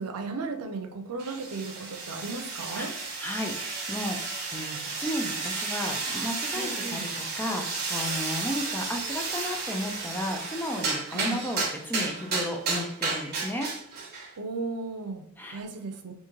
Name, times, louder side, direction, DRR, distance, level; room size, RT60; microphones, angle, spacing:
voice 1, 0.0-2.9 6.5-7.1 11.1-11.4 14.4-15.2 15.5-16.1, right 3 dB, 80° right, 5 dB, 0.6 m, -35 dB
sound 1, 1.2-14.3, right 4 dB, 45° right, 0.9 m, -33 dB
voice 2, 3.2-13.7 15.4-15.6, left 1 dB, 10° left, 2 dB, 0.4 m, -34 dB
3.6 x 2.7 x 3.0 m, 0.63 s
head